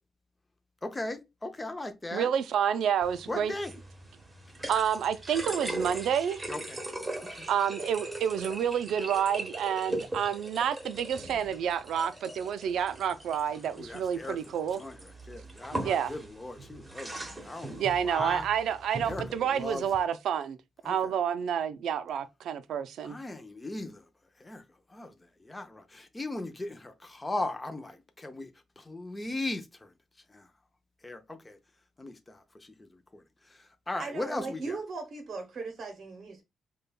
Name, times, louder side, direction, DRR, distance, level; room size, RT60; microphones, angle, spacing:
voice 1, 0.8-2.3 3.3-3.8 6.5-6.8 7.2-7.5 13.8-14.4 14.7-18.5 19.1-19.9 20.8-21.1 23.0-24.0 24.4-24.6 24.9-25.1 25.4-28.5 28.8-29.9 30.3-30.5 31.0-31.6 32.0-33.2 33.5-33.6 33.9-34.8, left 2 dB, 15° left, 0.5 m, -38 dB
voice 2, 2.1-3.5 4.7-6.4 7.5-14.8 15.7-16.1 17.8-20.6 20.8-23.2, right 8 dB, 80° right, 0.3 m, -29 dB
sound 1, 3.0-20.0, right 1 dB, 15° right, 0.9 m, -40 dB
voice 3, 34.0-36.4, right 4 dB, 50° right, 0.7 m, -38 dB
5.1 x 2.2 x 2.2 m
cardioid pair, 125°, 0 cm